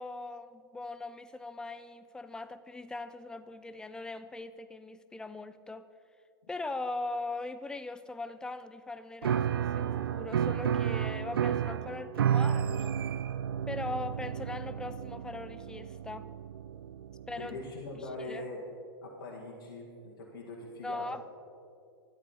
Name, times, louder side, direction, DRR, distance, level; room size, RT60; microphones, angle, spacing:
voice 1, 0.0-5.9 6.5-13.0 13.7-16.3 17.3-17.6 18.2-18.4 20.8-21.2, left 2 dB, 5° left, 12 dB, 0.4 m, -40 dB
Piano, 9.2-17.7, right 9 dB, 65° right, 0.4 m, -32 dB
voice 2, 17.4-18.6 19.0-21.1, left 2 dB, 60° left, -3 dB, 1.9 m, -42 dB
12.5 x 11.5 x 4.2 m, 2.4 s
figure-of-eight pair, 95°, 13 cm